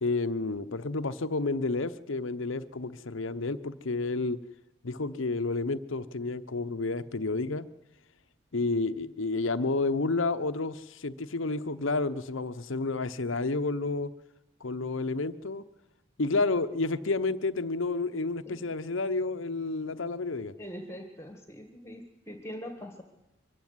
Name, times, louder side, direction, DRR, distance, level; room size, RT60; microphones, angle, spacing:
voice 1, 0.0-4.4 4.8-7.7 8.5-14.1 14.6-15.6 16.2-20.5, left 3 dB, 70° left, 12 dB, 0.9 m, -30 dB
voice 2, 20.6-23.0, equal, 15° left, 5 dB, 1.7 m, -42 dB
24.0 x 15.0 x 9.6 m, 1.0 s
head